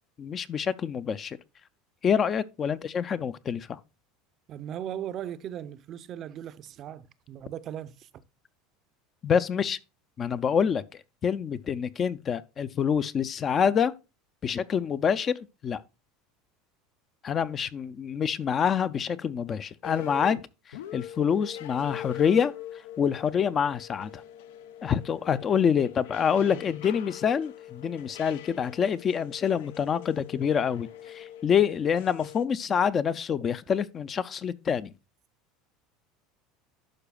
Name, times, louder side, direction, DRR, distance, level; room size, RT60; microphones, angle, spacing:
voice 1, 0.2-1.4 2.0-3.8 9.2-9.8 10.2-10.8 11.2-13.9 14.4-15.8 17.2-20.4 20.9-22.5 23.0-24.2 24.8-34.9, left 7 dB, 30° left, 0.4 m, -26 dB
voice 2, 4.5-8.1 26.4-26.6, right 10 dB, 40° right, 0.5 m, -38 dB
sound 1, 19.8-20.4 20.7-32.4, left 11 dB, 90° left, 0.6 m, -43 dB
11.5 x 4.9 x 2.3 m
supercardioid pair, 135°, 0 cm